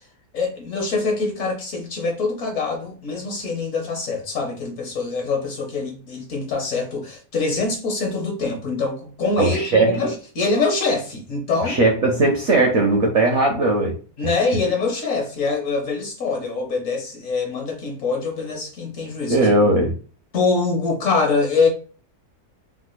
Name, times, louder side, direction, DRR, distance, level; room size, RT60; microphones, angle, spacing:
voice 1, 0.3-11.8 14.2-19.5 20.3-21.7, left 4 dB, 55° left, 1.1 m, -24 dB
voice 2, 9.4-10.0 11.7-14.0 19.3-19.9, right 2 dB, 60° right, 0.8 m, -18 dB
3.5 x 2.9 x 2.2 m
omnidirectional pair, 1.8 m